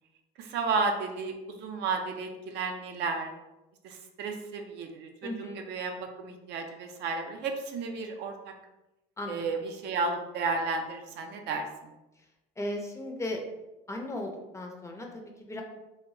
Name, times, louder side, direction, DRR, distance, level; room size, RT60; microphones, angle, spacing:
voice 1, 0.4-3.3 3.8-8.3 9.3-11.9, right 4 dB, 65° right, 4 dB, 0.4 m, -33 dB
voice 2, 5.2-5.6 9.2-9.4 12.6-13.4 13.9-15.6, left 1 dB, 15° left, 2 dB, 0.5 m, -36 dB
2.2 x 2.0 x 3.6 m, 0.99 s
cardioid pair, 105°, 19 cm